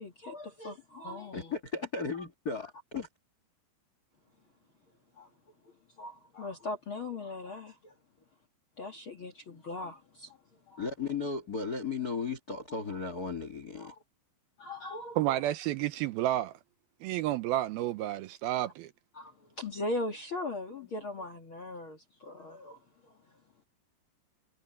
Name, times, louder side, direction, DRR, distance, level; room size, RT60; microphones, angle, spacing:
voice 1, 0.0-1.5 5.2-5.3 6.0-7.9 8.8-10.4 10.7-10.9 13.8-13.9 14.6-15.2 19.1-22.8 23.1-23.2, left 2 dB, 65° left, 1.2 m, -39 dB
voice 2, 1.3-3.1 10.8-13.9, left 4 dB, 85° left, 0.8 m, -35 dB
voice 3, 15.2-16.5 17.0-18.9, right 14 dB, 85° right, 2.2 m, -30 dB
omnidirectional pair, 5.3 m